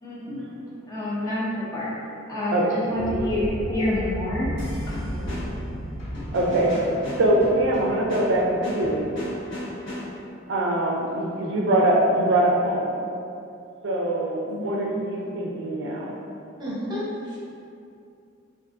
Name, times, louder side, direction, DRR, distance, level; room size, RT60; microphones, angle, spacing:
voice 1, 0.0-0.5 0.9-1.9 2.3-4.5 4.9-5.3, left 1 dB, 20° left, -8 dB, 0.5 m, -28 dB
sound 1, 2.9-9.2, equal, 85° left, 0.9 m, -33 dB
sound 2, 4.6-10.3, left 1 dB, 60° left, 1.0 m, -36 dB
voice 2, 6.3-6.8 7.1-9.1 10.5-13.0 13.8-16.1, right 1 dB, 60° right, -3 dB, 0.4 m, -23 dB
voice 3, 14.5-14.9 16.6-17.4, left 1 dB, 20° right, -8 dB, 0.8 m, -32 dB
3.4 x 2.4 x 2.4 m, 2.6 s
head